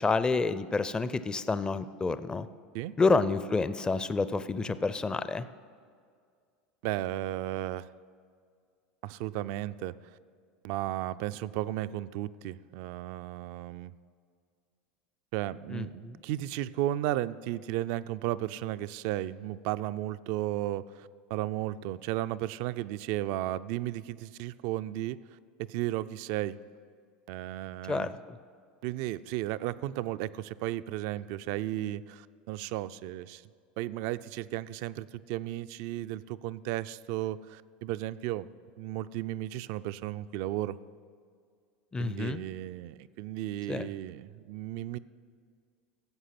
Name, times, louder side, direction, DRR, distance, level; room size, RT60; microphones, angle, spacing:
voice 1, 0.0-2.5 3.0-5.5 15.7-16.2 27.9-28.4 41.9-42.4 43.7-43.9, left 3 dB, 15° left, 13 dB, 0.5 m, -29 dB
voice 2, 6.8-7.9 9.0-9.9 10.6-13.9 15.3-25.2 25.7-26.6 27.3-28.1 28.8-33.4 33.8-38.5 38.8-40.8 42.0-45.0, right 14 dB, 60° right, 15 dB, 0.4 m, -34 dB
13.5 x 7.9 x 5.9 m, 2.1 s
hypercardioid pair, 95°, 5 cm